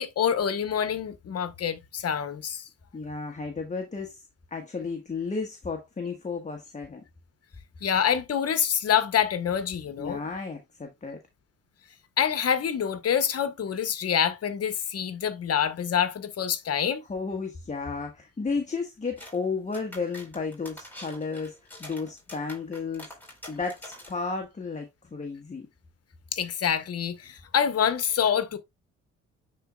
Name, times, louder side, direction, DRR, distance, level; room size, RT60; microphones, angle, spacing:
voice 1, 0.0-2.7 7.8-10.2 12.2-17.0 26.3-28.6, left 8 dB, 55° left, 1.2 m, -26 dB
voice 2, 2.9-4.2 4.5-7.0 10.0-11.2 17.1-23.1 23.5-25.7, left 4 dB, 25° left, 1.3 m, -33 dB
sound 1, 19.2-19.4 19.7-24.3, left 1 dB, 5° left, 4.1 m, -46 dB
10.0 x 4.1 x 2.3 m
cardioid pair, 90°, 30 cm